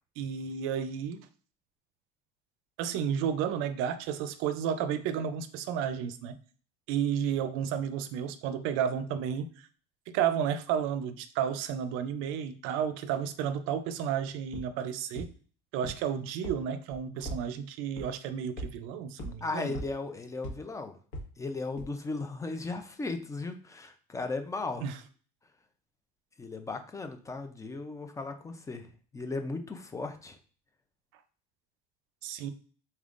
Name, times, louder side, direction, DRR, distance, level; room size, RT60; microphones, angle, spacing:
voice 1, 0.2-1.3 2.8-6.3 6.9-9.5 10.1-15.3 15.7-19.7 24.8-25.0 32.2-32.5, right 8 dB, 70° right, 12 dB, 0.5 m, -32 dB
sound 1, 14.5-14.6 15.2-15.3 15.8-15.9 16.4-16.5 16.9-17.4 18.0-18.1 18.6-18.7 19.2-19.3 19.7-19.8 20.4-20.5 21.1-21.2 21.8-21.9, equal, 65° left, 1.5 m, -37 dB
voice 2, 19.4-21.0 21.4-24.9 26.4-28.9 29.1-30.4, left 3 dB, 15° left, 7 dB, 0.5 m, -36 dB
4.2 x 3.6 x 2.5 m, 0.42 s
cardioid pair, 140°, 21 cm